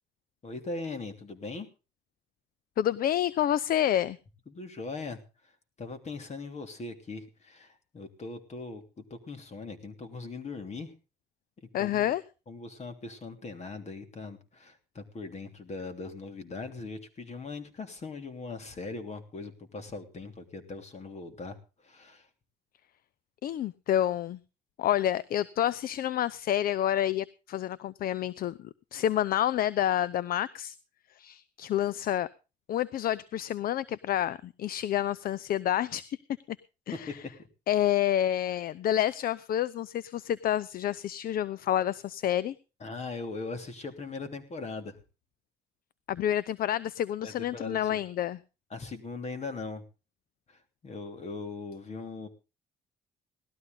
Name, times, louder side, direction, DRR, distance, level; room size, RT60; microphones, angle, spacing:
voice 1, 0.4-1.7 4.5-5.2 5.8-10.9 11.6-12.1 12.5-21.6 21.8-22.3 42.8-45.0 47.2-48.0 48.7-49.8 50.5-52.3, left 3 dB, 45° left, 7 dB, 3.2 m, -40 dB
voice 2, 2.8-4.2 11.7-12.2 23.4-24.4 24.8-30.8 31.2-32.3 32.7-36.2 36.9-37.2 37.7-42.6 46.1-48.4, left 11 dB, 65° left, 20 dB, 0.6 m, -28 dB
18.0 x 13.0 x 3.9 m, 0.32 s
cardioid pair, 80°, 16 cm